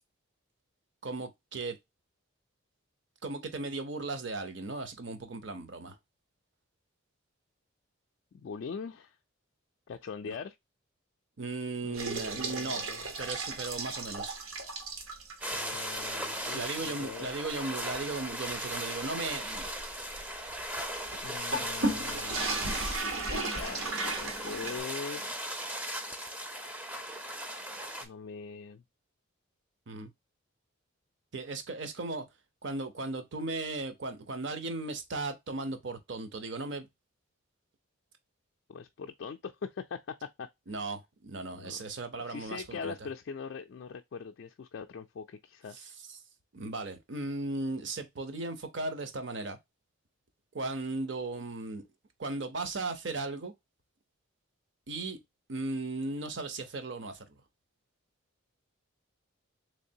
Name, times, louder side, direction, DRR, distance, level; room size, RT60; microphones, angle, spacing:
voice 1, 1.0-1.8 3.2-6.0 10.3-10.4 11.4-12.8 13.2-14.4 16.5-19.7 29.9-30.1 31.3-32.2 32.6-36.9 40.7-42.9 45.7-46.2 46.5-49.6 50.5-51.9 52.2-53.5 54.9-55.2 55.5-57.4, right 3 dB, 55° right, 0.7 m, -36 dB
voice 2, 8.3-9.2 9.9-10.6 11.8-13.0 15.5-17.3 21.2-22.8 23.3-25.9 28.0-28.8 38.7-40.5 41.5-41.8 42.2-45.9, left 5 dB, 55° left, 0.3 m, -42 dB
sound 1, 11.9-15.5 16.0-16.1 16.5-16.6 17.1-24.8, right 2 dB, 80° right, 1.0 m, -36 dB
sound 2, 15.4-28.0, equal, 5° right, 0.5 m, -38 dB
3.6 x 3.2 x 2.7 m
head